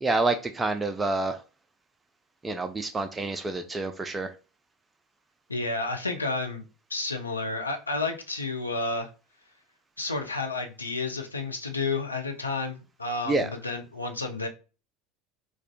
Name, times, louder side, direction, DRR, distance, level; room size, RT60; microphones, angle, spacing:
voice 1, 0.0-1.4 2.4-4.3 13.3-13.5, right 3 dB, 20° right, 0.4 m, -27 dB
voice 2, 5.5-6.6 6.9-9.1 10.0-14.5, left 3 dB, 90° left, 0.5 m, -31 dB
4.2 x 2.4 x 2.2 m
figure-of-eight pair, 70°, 0 cm